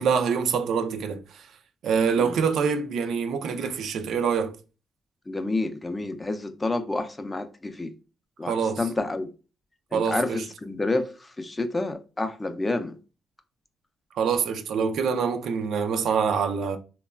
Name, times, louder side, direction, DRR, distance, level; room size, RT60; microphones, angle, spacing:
voice 1, 0.0-1.5 1.8-4.6 8.5-8.8 9.9-10.4 14.1-16.8, right 6 dB, 70° right, 0.4 m, -25 dB
voice 2, 5.3-7.9 8.4-9.3 9.9-13.0, left 2 dB, 20° left, 0.4 m, -29 dB
2.9 x 2.2 x 2.3 m
cardioid pair, 90°, 0 cm